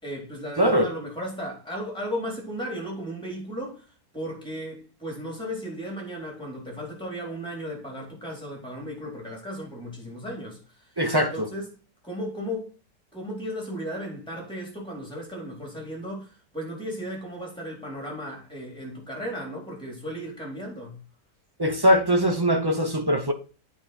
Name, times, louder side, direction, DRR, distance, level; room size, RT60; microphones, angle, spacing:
voice 1, 0.0-3.8 4.1-10.6 11.1-11.7 12.0-12.7 13.1-21.0, equal, 5° left, 3.9 m, -35 dB
voice 2, 0.6-0.9 11.0-11.5 21.6-23.3, equal, 25° right, 0.5 m, -21 dB
8.9 x 5.1 x 4.3 m
omnidirectional pair, 1.8 m